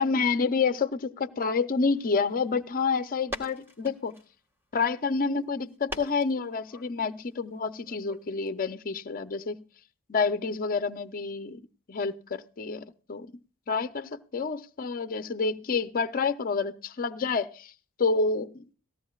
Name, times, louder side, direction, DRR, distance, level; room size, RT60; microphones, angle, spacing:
voice 1, 0.0-4.1 4.7-9.6 10.1-11.6 11.9-13.3 13.7-17.7 18.0-18.6, left 4 dB, 40° left, 0.6 m, -28 dB
sound 1, 1.8-8.5, equal, 10° right, 1.7 m, -45 dB
18.5 x 15.5 x 2.3 m
head